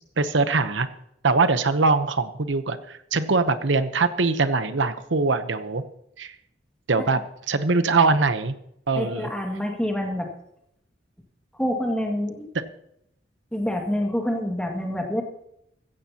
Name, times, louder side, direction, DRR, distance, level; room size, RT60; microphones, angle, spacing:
voice 1, 0.2-0.9 1.2-5.8 6.2-6.3 6.9-7.2 7.5-8.5 8.9-9.3, right 3 dB, 90° right, 11 dB, 0.9 m, -22 dB
voice 2, 9.0-10.3 11.5-12.5 13.5-15.2, equal, 5° left, 1 dB, 2.0 m, -27 dB
15.5 x 15.5 x 2.9 m, 0.77 s
head